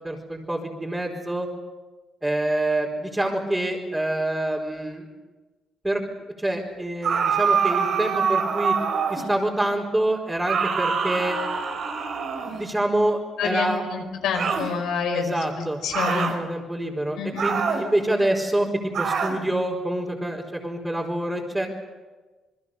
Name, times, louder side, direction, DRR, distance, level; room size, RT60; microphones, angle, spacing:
voice 1, 0.0-1.5 2.2-5.1 5.8-6.0 6.4-8.7 9.1-11.4 12.5-13.8 15.1-18.7 19.0-21.7, right 1 dB, 10° right, -5 dB, 4.5 m, -26 dB
sound 1, 7.0-9.3 10.4-12.7 14.3-14.7 15.9-16.4 17.4-17.9 18.9-19.4, right 6 dB, 65° right, 4.1 m, -25 dB
voice 2, 13.4-15.3 15.8-16.3 17.2-17.5, left 6 dB, 85° left, 4 dB, 5.1 m, -27 dB
28.5 x 21.5 x 6.8 m, 1.2 s
cardioid pair, 90°, 0 cm